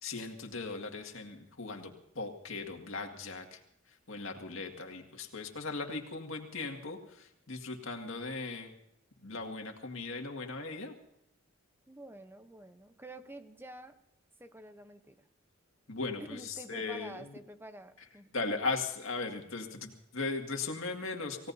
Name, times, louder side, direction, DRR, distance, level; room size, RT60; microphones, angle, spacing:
voice 1, 0.0-3.6 4.1-8.7 9.2-10.9 15.9-17.2 18.3-21.5, left 3 dB, 75° left, 2 dB, 2.1 m, -38 dB
voice 2, 11.9-14.0 14.4-15.3 16.2-18.3, right 1 dB, 10° right, 9 dB, 0.8 m, -49 dB
28.0 x 17.0 x 2.8 m, 0.79 s
head